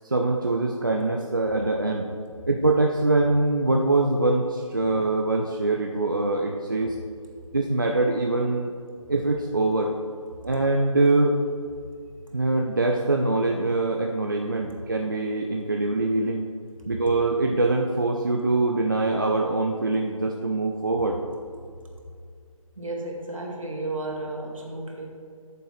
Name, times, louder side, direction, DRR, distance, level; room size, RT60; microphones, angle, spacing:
voice 1, 0.0-2.1 2.5-6.9 7.5-8.7 9.1-9.9 10.4-11.4 12.3-16.4 16.9-21.2, right 2 dB, 35° right, 1 dB, 0.5 m, -23 dB
voice 2, 22.8-25.1, right 2 dB, 65° right, 0 dB, 2.0 m, -33 dB
12.0 x 6.7 x 3.3 m, 2.3 s
figure-of-eight pair, 165°, 18 cm